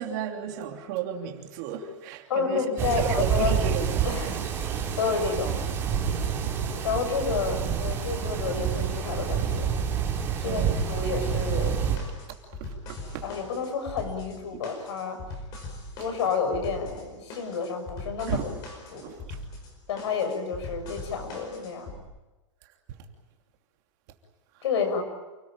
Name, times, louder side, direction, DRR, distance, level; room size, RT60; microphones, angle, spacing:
voice 1, 0.0-4.3 6.0-6.5 10.4-10.8 12.6-13.2 18.3-18.4 19.0-19.3, right 8 dB, 35° right, 2 dB, 3.0 m, -34 dB
voice 2, 2.3-3.6 4.0-4.4 5.0-5.6 6.8-9.7 10.4-11.8 13.2-15.2 16.0-18.5 18.9-19.0 19.9-22.0 24.6-25.0, left 5 dB, 60° left, 6 dB, 7.1 m, -30 dB
sound 1, 2.8-12.0, right 7 dB, 15° right, 3.6 m, -28 dB
sound 2, 11.3-22.0, left 2 dB, 25° left, 4.9 m, -41 dB
29.5 x 20.0 x 9.1 m, 1.1 s
supercardioid pair, 175°, 16 cm